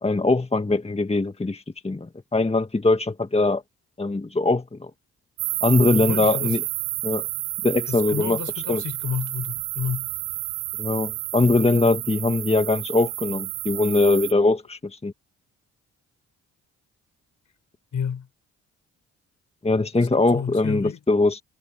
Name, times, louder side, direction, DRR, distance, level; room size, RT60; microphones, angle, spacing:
voice 1, 0.0-3.6 4.0-4.9 5.6-6.6 7.0-7.3 7.6-8.4 8.7-8.8 10.8-15.1 19.6-21.4, left 2 dB, 15° left, 1.7 m, -22 dB
sound 1, 5.4-14.3, right 26 dB, 90° right, 0.7 m, -30 dB
voice 2, 6.0-6.6 7.9-10.1 17.9-18.3 20.0-21.0, left 7 dB, 55° left, 6.7 m, -31 dB
hypercardioid pair, 50°, 35 cm